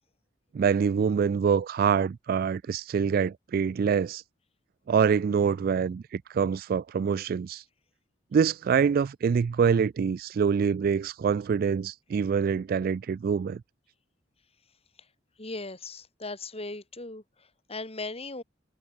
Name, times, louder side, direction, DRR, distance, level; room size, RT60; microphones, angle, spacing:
voice 1, 0.5-4.2 4.9-7.6 8.3-13.6, right 6 dB, 50° right, 0.3 m, -25 dB
voice 2, 15.4-18.4, left 2 dB, 30° left, 4.7 m, -38 dB
head